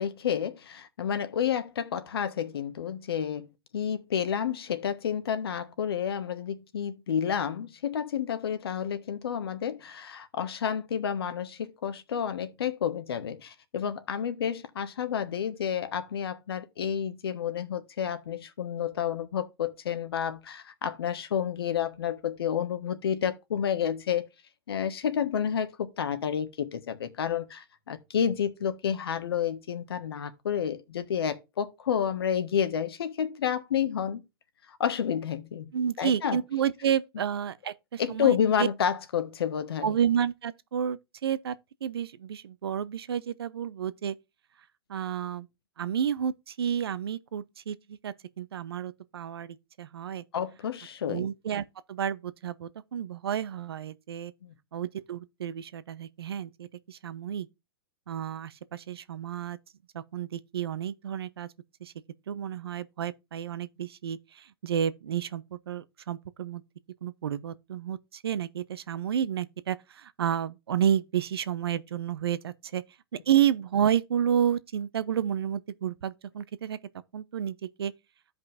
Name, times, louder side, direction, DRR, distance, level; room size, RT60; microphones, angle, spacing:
voice 1, 0.0-24.3 24.7-34.2 34.7-35.7 36.0-36.4 38.0-40.0 50.3-51.3 54.4-54.5, left 8 dB, 85° left, 1.4 m, -30 dB
voice 2, 35.7-38.7 39.8-41.6 41.8-44.2 44.9-45.5 45.8-50.2 51.1-54.3 54.7-57.5 58.1-59.6 59.9-61.5 61.8-61.9 62.3-66.6 67.0-72.8 73.1-76.8 77.1-77.9, right 9 dB, 85° right, 0.8 m, -30 dB
14.0 x 5.2 x 2.6 m
hypercardioid pair, 130°, 13 cm